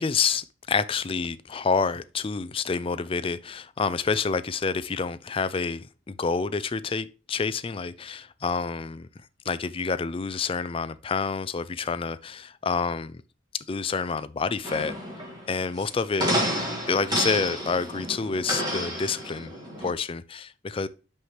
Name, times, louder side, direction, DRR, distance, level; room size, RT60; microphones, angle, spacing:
voice 1, 0.0-9.1 9.5-13.2 13.5-14.9 15.5-16.3 16.9-19.5 19.8-20.9, left 5 dB, 30° left, 0.4 m, -28 dB
sound 1, 14.6-19.9, equal, 20° right, 2.3 m, -30 dB
5.8 x 5.4 x 3.1 m
head